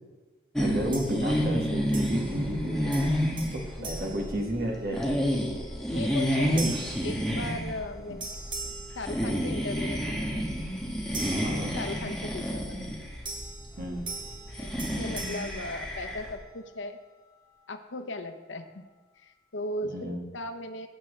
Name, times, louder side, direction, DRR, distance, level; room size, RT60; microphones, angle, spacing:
sound 1, 0.5-16.3, equal, 5° left, 1.4 m, -30 dB
voice 1, 0.6-3.1 3.5-5.2 6.4-6.6 6.9-7.0 11.3-11.8 13.8-14.1 19.9-20.3, right 1 dB, 50° right, 0 dB, 1.7 m, -33 dB
sound 2, 0.9-1.6 1.9-2.6 2.9-5.1 5.6-5.9 6.6-7.9 8.2-9.8 11.1-12.3 13.2-16.5, right 3 dB, 25° right, 1.2 m, -42 dB
voice 2, 3.8-4.1 5.9-6.8 7.0-8.4 8.9-10.4 11.5-12.8 14.5-17.0 17.7-18.8 19.2-20.9, left 2 dB, 90° left, 7 dB, 0.8 m, -38 dB
14.5 x 7.4 x 3.3 m, 1.3 s
head